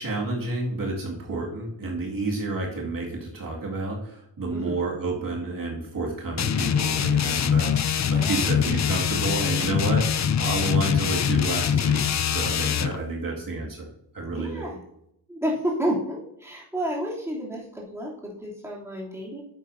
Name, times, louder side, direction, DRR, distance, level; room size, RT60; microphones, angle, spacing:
voice 1, 0.0-13.9 14.1-14.6, right 2 dB, 50° right, -2 dB, 2.2 m, -30 dB
sound 1, 6.4-13.0, left 8 dB, 40° left, 0.6 m, -23 dB
voice 2, 14.3-14.8 15.3-19.4, equal, 5° right, -4 dB, 3.0 m, -30 dB
10.5 x 8.2 x 2.7 m, 0.79 s
cardioid pair, 105°, 42 cm